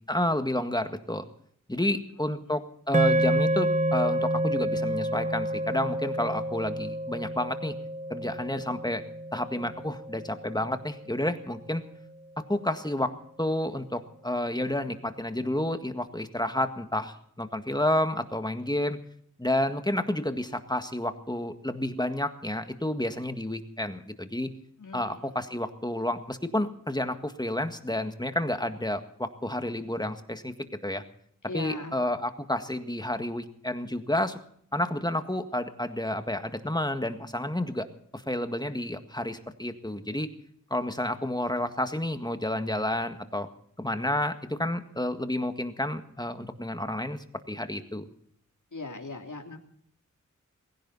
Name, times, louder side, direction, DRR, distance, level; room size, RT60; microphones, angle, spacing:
voice 1, 0.1-1.2 1.7-7.7 8.1-9.0 9.3-11.8 12.5-13.1 13.4-19.0 19.4-24.5 24.9-30.5 30.8-31.0 31.5-34.4 34.7-37.9 38.1-40.3 40.7-43.5 43.8-47.2 47.5-48.0, left 1 dB, 15° left, 8 dB, 1.8 m, -30 dB
sound 1, 2.9-11.3, right 1 dB, 25° right, 0.8 m, -29 dB
voice 2, 24.8-25.2 31.5-32.0 48.7-49.6, left 3 dB, 70° left, 3 dB, 3.0 m, -39 dB
21.0 x 16.5 x 4.1 m, 0.66 s
wide cardioid pair, 60°, 32 cm